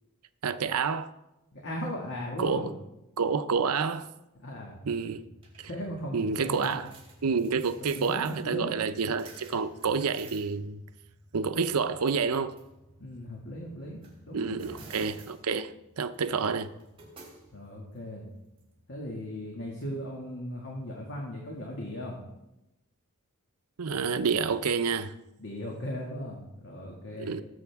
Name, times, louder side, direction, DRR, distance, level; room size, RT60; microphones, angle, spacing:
voice 1, 0.4-1.1 2.4-2.7 3.2-4.1 4.9-5.2 5.6-5.7 6.1-6.9 7.2-10.8 11.3-12.5 14.3-16.7 23.8-25.1 27.2-27.4, right 5 dB, 85° right, 11 dB, 0.6 m, -28 dB
voice 2, 1.5-2.7 4.4-4.8 5.6-6.8 8.0-8.8 13.0-14.6 17.5-18.3 18.9-22.2 25.4-27.4, left 1 dB, 55° left, -2 dB, 1.9 m, -37 dB
sound 1, 4.5-19.3, right 2 dB, 25° right, 3.6 m, -53 dB
19.0 x 7.8 x 3.6 m, 0.94 s
head